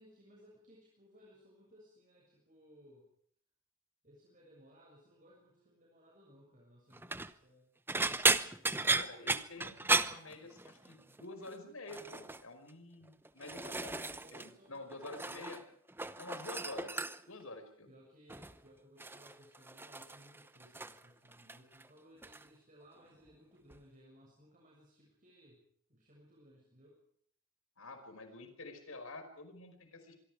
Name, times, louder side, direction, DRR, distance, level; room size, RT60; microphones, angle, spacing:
voice 1, 0.0-3.0 4.0-7.7 13.2-13.4 14.2-15.1 17.9-25.6 25.9-27.0, equal, 35° right, -3 dB, 7.0 m, -61 dB
sound 1, 6.9-7.3 7.9-10.9 11.2-11.5 11.9-12.4 13.1-14.5 14.8-15.6 15.9-17.4 18.3-18.6 19.0-21.1 21.3-21.9 22.2-22.4 23.7-23.8, right 3 dB, 10° right, 0.8 m, -35 dB
voice 2, 8.8-15.6 16.2-17.9 27.8-30.1, left 2 dB, 70° left, 8 dB, 5.2 m, -49 dB
25.5 x 23.5 x 5.0 m, 0.63 s
head